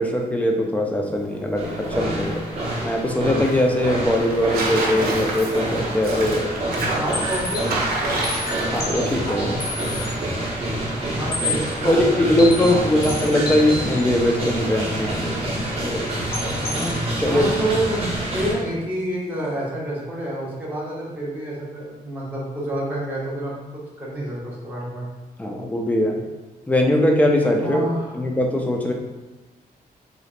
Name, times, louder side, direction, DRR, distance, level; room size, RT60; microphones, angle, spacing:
voice 1, 0.0-2.4 2.8-6.4 8.7-9.6 11.8-15.4 15.8-16.1 16.6-16.9 17.2-17.5 25.4-26.2 26.7-27.8 28.1-28.9, left 1 dB, 10° left, 1 dB, 0.3 m, -21 dB
Tearing, 1.1-13.3, right 2 dB, 70° right, 0.7 m, -32 dB
sound 1, 1.6-18.5, right 1 dB, 40° right, 1.0 m, -27 dB
voice 2, 6.7-7.7 10.8-12.6 12.9-13.0 16.8-25.1 27.6-28.1, right 1 dB, 10° right, -7 dB, 0.9 m, -29 dB
sound 2, 6.8-10.1 10.5-10.6 11.0-11.1 11.3-14.0 16.2-17.0, left 2 dB, 75° left, 0.7 m, -30 dB
3.8 x 3.2 x 2.4 m, 1.2 s
wide cardioid pair, 180°, 16 cm